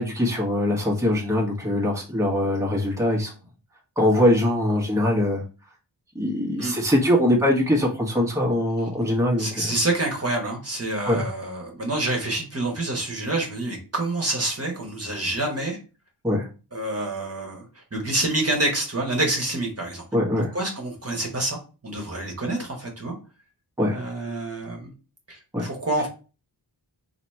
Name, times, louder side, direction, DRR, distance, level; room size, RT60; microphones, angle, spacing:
voice 1, 0.0-3.3 4.0-5.4 6.1-9.7 11.0-11.3 16.2-16.5 20.1-20.5 23.8-24.0 25.5-25.7, left 1 dB, 5° right, -2 dB, 1.0 m, -22 dB
voice 2, 9.4-15.8 16.7-20.0 20.5-23.1 23.9-24.9 25.3-26.1, right 2 dB, 35° right, 0 dB, 1.2 m, -27 dB
2.9 x 2.9 x 4.3 m, 0.33 s
wide cardioid pair, 80°, 42 cm